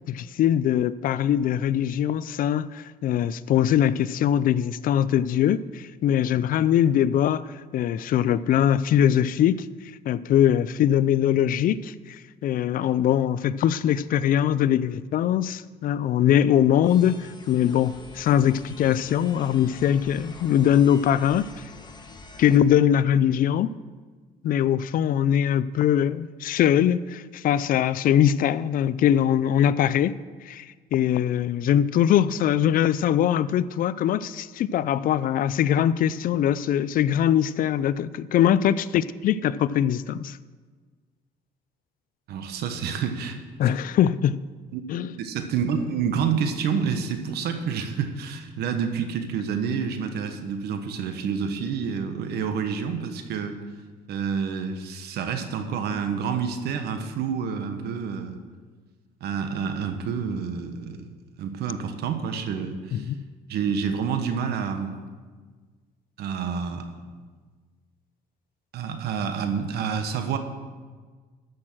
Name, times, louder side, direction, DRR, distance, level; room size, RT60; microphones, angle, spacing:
voice 1, 0.1-7.5 7.7-9.7 10.1-21.5 22.4-23.7 24.4-30.1 30.5-40.4 43.6-44.4 44.9-45.1 62.9-63.2, left 10 dB, 55° left, 0.4 m, -22 dB
sound 1, 16.8-22.6, left 3 dB, 25° left, 1.3 m, -45 dB
voice 2, 42.3-43.4 43.6-43.7 44.7-44.8 45.2-53.6 54.1-58.4 59.2-61.1 61.4-63.1 63.5-64.9 66.2-66.9 68.7-70.4, right 6 dB, 70° right, 1.3 m, -28 dB
13.5 x 6.3 x 6.2 m
cardioid pair, 110°, 17 cm